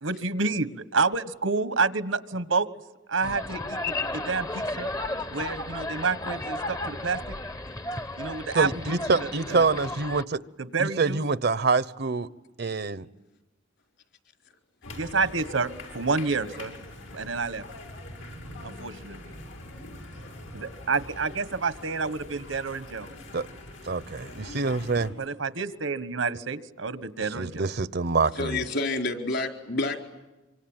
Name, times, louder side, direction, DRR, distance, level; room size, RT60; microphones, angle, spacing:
voice 1, 0.0-2.7 3.1-4.9 5.3-7.4 8.2-9.3 9.5-9.7 10.6-11.2 15.0-16.7 17.1-17.6 18.6-19.2 20.5-23.1 25.2-27.7, right 4 dB, 80° right, 13 dB, 1.4 m, -29 dB
sound 1, 3.2-10.2, left 2 dB, 15° left, 0.8 m, -34 dB
voice 2, 8.5-10.4 10.8-12.3 12.6-13.1 23.3-23.5 23.9-25.1 27.3-28.6, right 4 dB, 55° right, 16 dB, 0.8 m, -26 dB
sound 2, 14.8-25.1, left 2 dB, 85° left, 6.8 m, -43 dB
voice 3, 28.3-30.0, left 2 dB, 60° left, 4 dB, 4.3 m, -28 dB
26.0 x 25.5 x 9.0 m, 1.1 s
head